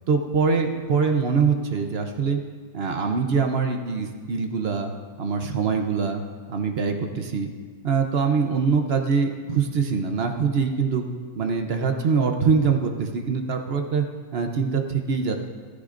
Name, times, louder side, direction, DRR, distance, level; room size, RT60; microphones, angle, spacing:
voice 1, 0.1-2.4 2.7-4.9 5.2-6.2 6.5-7.5 7.8-11.0 11.4-14.0 14.3-15.4, right 5 dB, 55° right, 4 dB, 0.7 m, -23 dB
15.0 x 13.0 x 2.5 m, 1.6 s
omnidirectional pair, 2.0 m